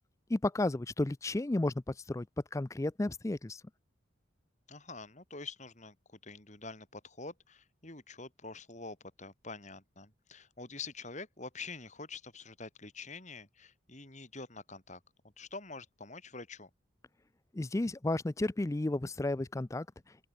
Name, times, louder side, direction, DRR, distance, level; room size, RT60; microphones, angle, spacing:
voice 1, 0.3-1.7 2.1-2.3 2.5-3.6 17.5-19.9, left 2 dB, 15° left, 0.4 m, -32 dB
voice 2, 4.7-15.0 15.4-16.7, left 3 dB, 35° left, 4.2 m, -46 dB
open air
head